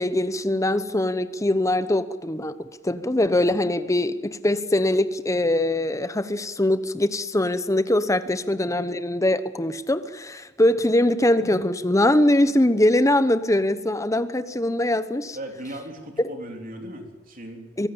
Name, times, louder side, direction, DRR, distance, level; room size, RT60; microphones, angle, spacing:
voice 1, 0.0-2.5 2.8-15.4 17.8-17.9, left 1 dB, 15° left, 12 dB, 1.0 m, -22 dB
voice 2, 15.3-17.7, right 1 dB, 50° right, 4 dB, 3.5 m, -37 dB
24.0 x 16.0 x 8.8 m, 1.1 s
head